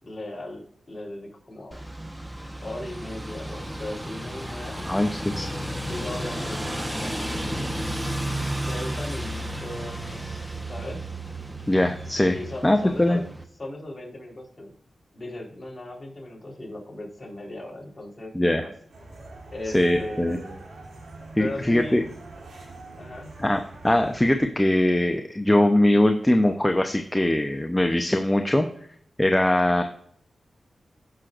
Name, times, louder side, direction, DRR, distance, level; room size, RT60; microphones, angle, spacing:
voice 1, 0.0-1.8 2.6-4.9 5.8-7.7 8.7-11.1 12.3-13.3 13.6-14.7 15.1-18.7 19.5-20.6 21.4-22.0 23.0-23.3, left 1 dB, 30° left, -2 dB, 4.1 m, -38 dB
sound 1, 1.7-13.4, right 1 dB, 10° right, 1.2 m, -33 dB
voice 2, 4.9-5.5 11.7-12.4 12.6-13.2 18.3-18.6 19.7-20.4 21.3-22.0 23.4-28.7 29.2-29.8, left 1 dB, 15° left, 5 dB, 0.8 m, -21 dB
sound 2, 18.9-24.3, right 2 dB, 85° right, 3.6 m, -43 dB
14.5 x 6.3 x 2.6 m, 0.64 s
cardioid pair, 55°, 0 cm